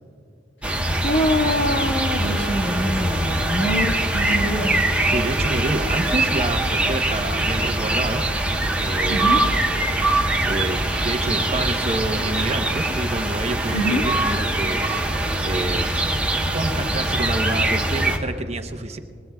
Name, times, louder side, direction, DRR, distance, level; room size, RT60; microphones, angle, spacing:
sound 1, 0.6-18.2, right 1 dB, 10° right, 1.2 m, -22 dB
voice 1, 1.0-4.8 9.1-9.4 13.7-14.0, equal, 75° left, 0 dB, 1.7 m, -24 dB
voice 2, 5.1-8.2 8.8-9.5 10.2-15.9 16.5-19.0, right 2 dB, 35° right, 6 dB, 1.0 m, -28 dB
24.5 x 20.5 x 2.3 m, 2.4 s
head